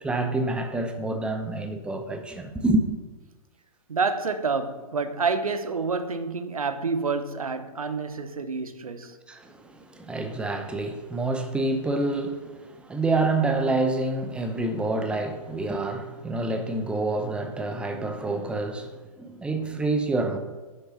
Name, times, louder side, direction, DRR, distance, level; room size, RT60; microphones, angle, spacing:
voice 1, 0.0-2.8 9.3-20.4, right 2 dB, 5° right, 0.8 m, -27 dB
voice 2, 3.9-9.2, right 4 dB, 75° right, 0.9 m, -28 dB
9.7 x 6.6 x 5.8 m
figure-of-eight pair, 110°, 19 cm